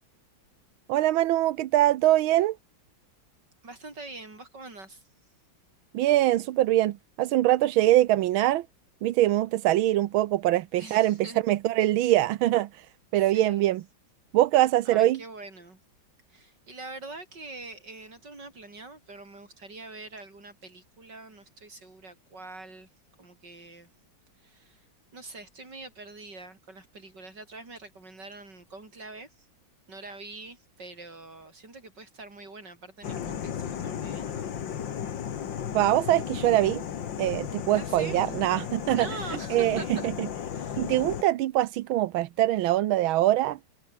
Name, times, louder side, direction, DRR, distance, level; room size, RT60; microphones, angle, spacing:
voice 1, 0.9-2.6 5.9-8.7 9.0-12.9 13.1-13.8 14.3-15.2 35.7-36.8 37.2-39.1 39.5-40.3 40.8-43.6, right 14 dB, 90° right, 1.6 m, -23 dB
voice 2, 3.6-5.0 10.8-11.4 13.2-13.7 14.8-15.8 16.3-22.9 23.2-23.9 24.4-24.8 25.1-29.3 29.9-34.5 37.7-38.3 38.9-40.1 40.5-40.8, right 3 dB, 55° right, 6.5 m, -44 dB
sound 1, 33.0-41.2, left 8 dB, 65° left, 2.2 m, -35 dB
omnidirectional pair, 2.2 m